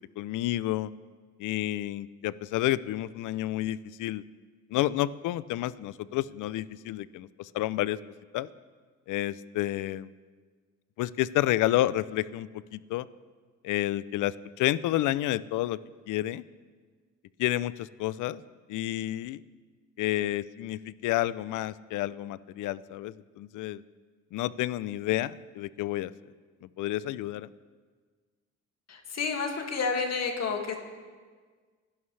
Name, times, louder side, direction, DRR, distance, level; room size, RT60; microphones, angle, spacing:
voice 1, 0.2-0.9 1.4-4.2 4.7-8.0 8.3-8.5 9.1-10.1 11.0-13.1 13.6-15.8 16.1-16.4 17.4-18.4 18.7-19.4 20.0-23.8 24.3-26.1 26.6-27.5, left 15 dB, 85° left, 18 dB, 0.5 m, -30 dB
voice 2, 28.9-30.8, left 5 dB, 60° left, 3 dB, 2.1 m, -30 dB
28.0 x 11.5 x 3.3 m, 1.5 s
cardioid pair, 90°, 30 cm